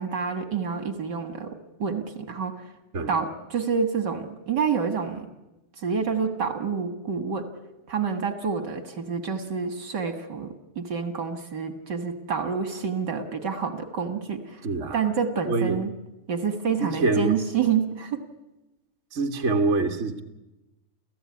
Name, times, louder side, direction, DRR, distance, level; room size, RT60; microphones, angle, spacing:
voice 1, 0.0-2.6 3.1-5.3 5.8-7.5 7.9-14.6 14.9-15.9 16.3-18.2, right 6 dB, 50° right, 8 dB, 1.2 m, -28 dB
voice 2, 14.6-15.0 15.5-15.8 16.8-17.3 19.1-20.2, right 3 dB, 70° right, 4 dB, 0.6 m, -25 dB
29.5 x 15.0 x 9.6 m, 1.0 s
omnidirectional pair, 4.1 m